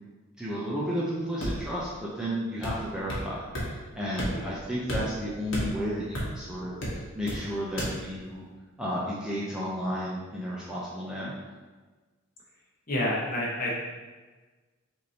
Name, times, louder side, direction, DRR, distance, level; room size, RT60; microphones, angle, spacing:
voice 1, 0.4-8.5 8.8-11.4, equal, 5° right, -7 dB, 0.6 m, -33 dB
sound 1, 1.4-1.8 2.6-3.3 3.5-3.7 4.2-4.6 4.9-6.4 6.8-7.4 7.8-7.9, equal, 60° left, 1.3 m, -32 dB
voice 2, 12.9-13.8, left 1 dB, 40° left, -4 dB, 1.1 m, -29 dB
6.3 x 2.8 x 2.8 m, 1.3 s
head